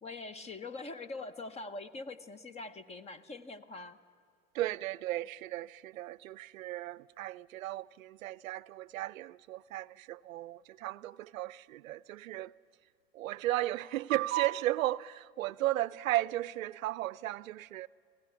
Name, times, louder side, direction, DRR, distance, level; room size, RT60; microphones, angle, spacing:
voice 1, 0.0-4.0, left 3 dB, 15° left, 0.7 m, -43 dB
voice 2, 4.5-12.5 13.1-17.9, right 15 dB, 80° right, 0.5 m, -35 dB
20.5 x 16.5 x 10.0 m
hypercardioid pair, 115°, 40 cm